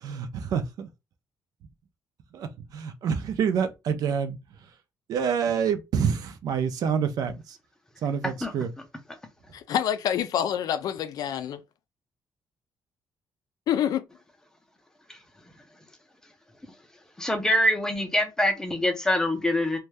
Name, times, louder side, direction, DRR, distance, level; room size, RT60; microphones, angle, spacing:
voice 1, 0.0-0.9 2.3-4.4 5.1-7.6 8.0-8.7, right 7 dB, 60° right, 0.5 m, -27 dB
voice 2, 9.5-11.6 13.7-14.0, left 10 dB, 60° left, 0.3 m, -27 dB
voice 3, 17.2-19.8, left 1 dB, 10° left, 0.5 m, -24 dB
2.6 x 2.2 x 3.2 m
cardioid pair, 175°, 7 cm